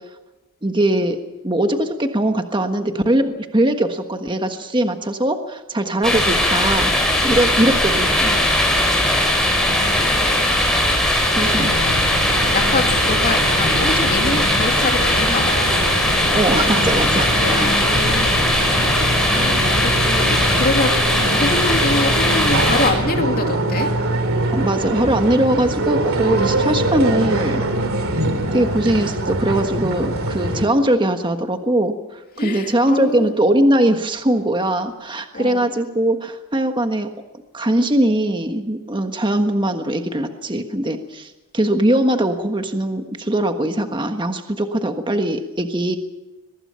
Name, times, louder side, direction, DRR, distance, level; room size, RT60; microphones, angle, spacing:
voice 1, 0.6-1.2 1.4-6.9 7.2-8.4 11.3-11.7 16.3-17.7 24.5-27.6 28.5-37.1 37.5-46.0, right 1 dB, 20° right, 6 dB, 1.4 m, -20 dB
sound 1, 6.0-22.9, left 1 dB, 5° left, 5.7 m, -19 dB
voice 2, 9.4-10.6 11.3-15.6 17.4-23.9 32.4-33.3 35.3-35.6, left 2 dB, 40° left, 4 dB, 2.8 m, -26 dB
sound 2, 10.8-30.7, right 1 dB, 65° right, 3.1 m, -24 dB
23.0 x 21.5 x 5.7 m, 1.1 s
head